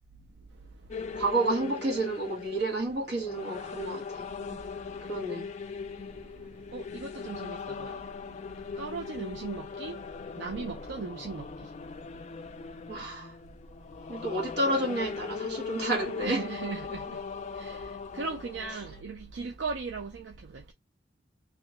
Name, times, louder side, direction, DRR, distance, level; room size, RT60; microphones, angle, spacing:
voice 1, 0.5-1.2 4.4-5.2 5.9-13.0 13.8-14.3 16.2-20.7, right 4 dB, 80° right, 0.5 m, -40 dB
sound 1, 0.9-19.0, left 5 dB, 40° left, 0.3 m, -40 dB
voice 2, 1.1-4.3 5.1-5.5 12.9-13.3 14.1-16.4, right 2 dB, 65° right, 1.1 m, -30 dB
3.0 x 2.2 x 2.9 m
head